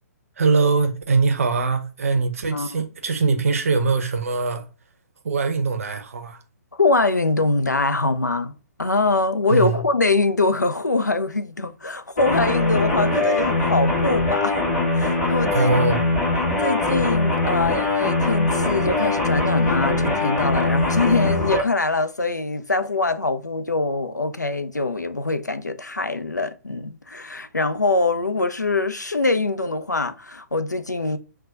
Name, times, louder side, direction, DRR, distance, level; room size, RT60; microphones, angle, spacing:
voice 1, 0.4-4.7 5.2-6.4 9.5-9.8 15.5-16.0, right 4 dB, 55° right, 0.6 m, -22 dB
voice 2, 2.5-2.9 6.7-14.6 14.9-15.7 16.1-16.2 16.6-31.2, left 3 dB, 85° left, 0.4 m, -23 dB
sound 1, 12.2-21.6, left 2 dB, 30° left, 1.4 m, -22 dB
5.6 x 2.2 x 2.5 m
figure-of-eight pair, 125°, 9 cm